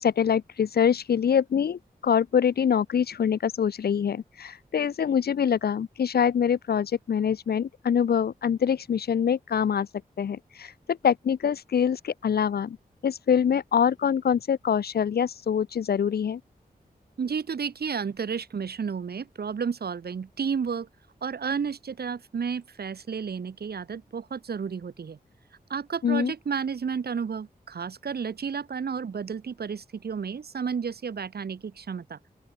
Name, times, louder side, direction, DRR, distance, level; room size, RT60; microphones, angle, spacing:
voice 1, 0.0-9.9 10.2-12.8 13.0-16.4 26.0-26.3, left 8 dB, 80° left, 0.7 m, -25 dB
voice 2, 17.2-20.9 21.2-25.2 25.7-32.2, right 6 dB, 85° right, 4.4 m, -32 dB
open air
wide cardioid pair, 140°, 16 cm